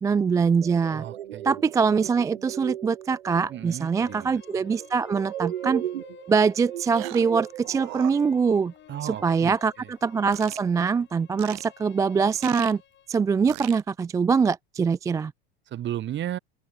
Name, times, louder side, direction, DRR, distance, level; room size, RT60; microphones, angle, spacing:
voice 1, 0.0-1.0 1.4-5.8 6.3-8.7 9.0-12.8 13.1-15.3, right 5 dB, 10° right, 0.3 m, -23 dB
sound 1, 0.6-8.0, right 11 dB, 90° right, 1.5 m, -37 dB
voice 2, 0.9-1.6 3.5-4.4 8.9-9.9 15.7-16.4, right 12 dB, 35° right, 3.4 m, -35 dB
sound 2, 3.3-13.3, left 11 dB, 35° left, 3.4 m, -52 dB
sound 3, 5.9-6.0 6.9-7.4 7.6-8.8 9.1-9.2 10.3-10.6 11.4-11.7 12.4-12.7 13.5-13.8, right 32 dB, 55° right, 1.7 m, -39 dB
open air
hypercardioid pair, 105°, 31 cm